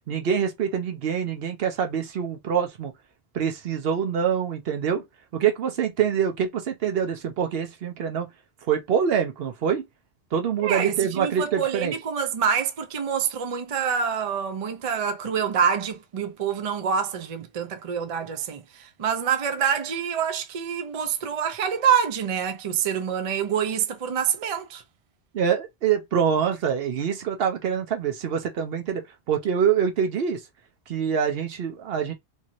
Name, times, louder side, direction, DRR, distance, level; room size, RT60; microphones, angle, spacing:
voice 1, 0.1-2.9 3.3-5.0 5.3-8.3 8.7-9.8 10.3-11.9 25.3-30.4 30.9-32.1, right 7 dB, 65° right, 0.8 m, -25 dB
voice 2, 10.6-24.8, right 7 dB, 45° right, 0.4 m, -26 dB
2.9 x 2.8 x 2.5 m
omnidirectional pair, 1.1 m